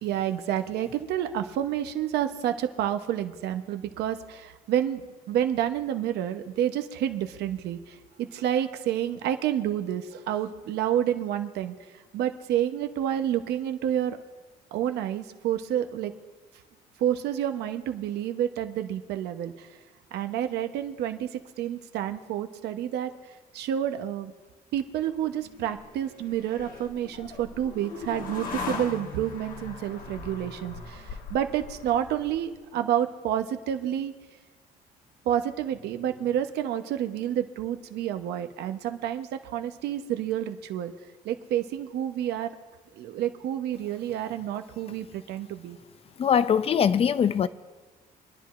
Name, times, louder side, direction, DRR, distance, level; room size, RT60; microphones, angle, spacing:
voice 1, 0.0-5.0 5.3-11.8 12.1-14.2 14.7-16.1 17.0-19.8 20.1-24.3 24.7-34.1 35.2-40.9 41.2-42.5 42.9-45.8, right 10 dB, 75° right, 0.9 m, -29 dB
sound 1, 25.2-32.6, left 4 dB, 55° left, 1.4 m, -40 dB
voice 2, 46.2-47.5, left 8 dB, 35° left, 0.5 m, -22 dB
26.0 x 10.5 x 2.5 m
cardioid pair, 110°, 17 cm